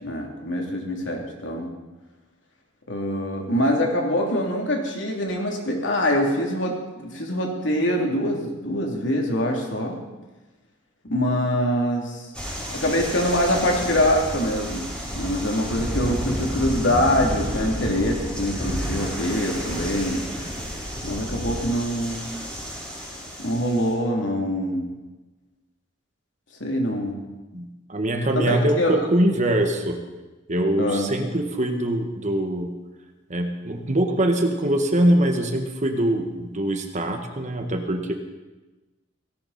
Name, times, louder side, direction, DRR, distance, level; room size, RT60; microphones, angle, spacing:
voice 1, 0.0-1.7 2.9-10.0 11.0-12.3 12.7-20.2 21.0-22.3 23.4-24.9 26.6-27.2 28.3-29.1 30.8-31.1, equal, 70° left, 1 dB, 3.1 m, -24 dB
sound 1, 12.3-23.9, equal, 5° left, 6.6 m, -31 dB
voice 2, 27.5-30.0 30.5-32.7 33.3-38.1, right 1 dB, 40° right, 5 dB, 1.6 m, -23 dB
18.0 x 17.5 x 4.3 m, 1.1 s
head